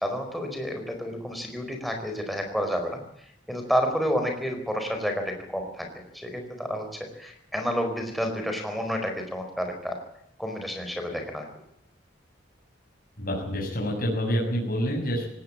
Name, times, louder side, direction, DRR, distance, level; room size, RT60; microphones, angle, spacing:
voice 1, 0.0-3.0 3.5-5.9 6.1-6.8 7.2-10.0 10.4-11.4, equal, ahead, 3 dB, 4.7 m, -29 dB
voice 2, 13.2-15.3, equal, 50° left, -1 dB, 6.9 m, -27 dB
18.5 x 18.5 x 8.8 m, 0.74 s
head